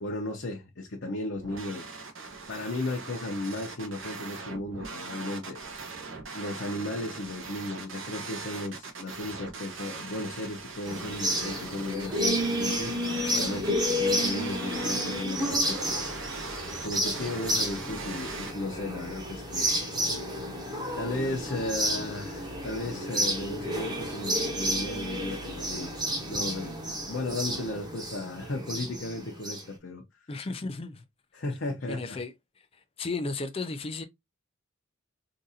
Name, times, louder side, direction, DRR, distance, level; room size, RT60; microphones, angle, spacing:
voice 1, 0.0-2.0 2.5-5.6 6.3-12.9 13.3-16.0 16.8-19.7 21.0-26.7 27.1-30.0 30.4-30.5 31.3-32.2, left 2 dB, 55° left, 0.7 m, -35 dB
sound 1, 1.3-18.5, right 4 dB, 60° right, 0.9 m, -41 dB
sound 2, 10.9-29.6, equal, 20° right, 1.0 m, -31 dB
voice 2, 30.3-31.0 31.9-32.3 33.0-34.0, left 3 dB, 25° left, 0.4 m, -34 dB
3.8 x 2.5 x 2.7 m
head